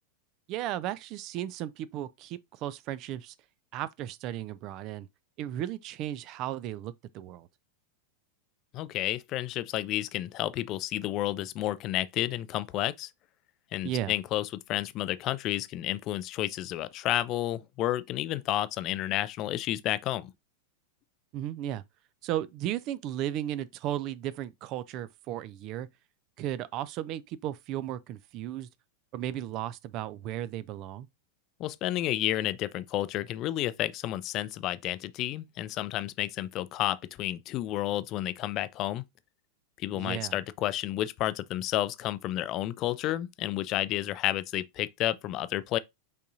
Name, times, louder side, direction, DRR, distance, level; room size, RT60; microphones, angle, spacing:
voice 1, 0.5-3.3 3.7-5.1 5.4-7.5 13.8-14.1 21.3-21.8 22.2-25.9 26.4-28.7 29.1-31.1 39.9-40.3, right 12 dB, 40° right, 0.4 m, -35 dB
voice 2, 8.7-13.1 13.7-20.3 31.6-39.0 39.8-45.8, left 14 dB, 35° left, 0.4 m, -31 dB
5.4 x 3.5 x 2.6 m
figure-of-eight pair, 90°, 0 cm